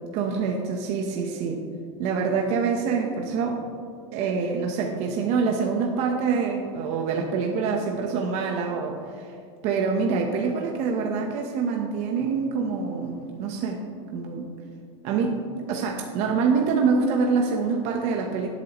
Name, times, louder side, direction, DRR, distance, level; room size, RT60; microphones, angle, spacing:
voice 1, 0.1-1.6 2.0-3.6 4.1-9.3 9.6-13.8 14.1-14.5 15.0-18.5, right 5 dB, 45° right, 2 dB, 1.0 m, -25 dB
18.0 x 8.5 x 3.1 m, 2.3 s
supercardioid pair, 155°, 15 cm